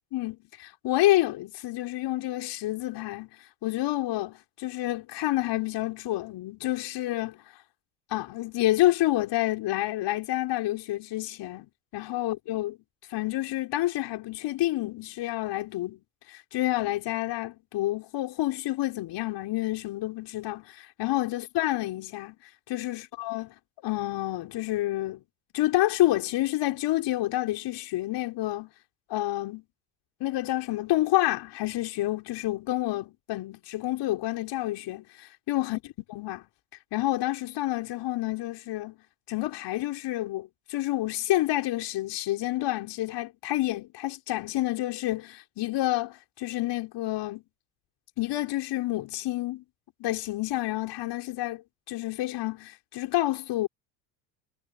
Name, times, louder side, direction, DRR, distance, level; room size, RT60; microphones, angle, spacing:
voice 1, 0.1-3.3 3.6-7.4 8.1-11.7 11.9-12.8 13.1-16.0 16.3-22.4 22.7-23.5 23.8-25.2 25.5-28.7 29.1-29.6 30.2-35.8 36.1-36.5 36.9-39.0 39.3-47.4 48.2-49.6 50.0-53.7, left 16 dB, 55° left, 5.6 m, -29 dB
supercardioid pair, 95°, 50 cm